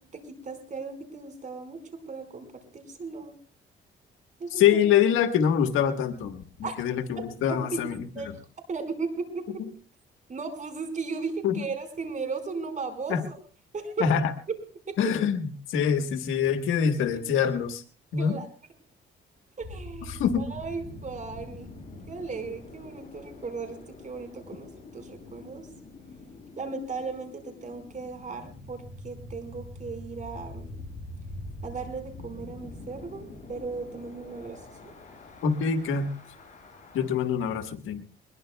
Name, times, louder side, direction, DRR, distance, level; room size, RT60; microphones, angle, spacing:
voice 1, 0.0-3.4 4.4-4.8 6.6-6.8 7.5-7.8 8.1-8.3 8.7-9.6 10.3-13.4 13.7-14.1 14.5-14.6 14.9-15.1 17.1-17.2 18.2-18.5 19.6-21.7 22.1-25.7 26.6-30.9 31.6-34.9, right 4 dB, 40° right, 6 dB, 4.9 m, -36 dB
voice 2, 4.6-8.0 11.4-11.6 13.1-13.2 14.0-14.3 15.0-17.8 18.1-18.4 20.1-20.5 35.4-36.1 36.9-38.0, left 8 dB, 85° left, 7 dB, 1.4 m, -25 dB
sound 1, 19.6-37.1, left 2 dB, 40° left, 8.0 m, -44 dB
21.5 x 21.0 x 2.3 m, 0.39 s
cardioid pair, 90°, 20 cm